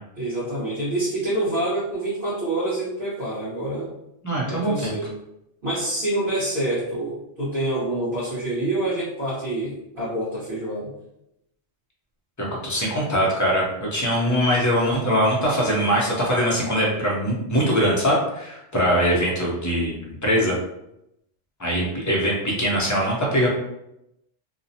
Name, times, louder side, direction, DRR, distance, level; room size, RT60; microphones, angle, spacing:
voice 1, 0.2-3.9 4.5-5.1 5.6-10.9, right 1 dB, 45° right, -12 dB, 1.2 m, -26 dB
voice 2, 4.2-4.9 12.4-20.5 21.6-23.5, equal, 25° left, -4 dB, 0.4 m, -22 dB
2.7 x 2.0 x 2.7 m, 0.84 s
omnidirectional pair, 1.2 m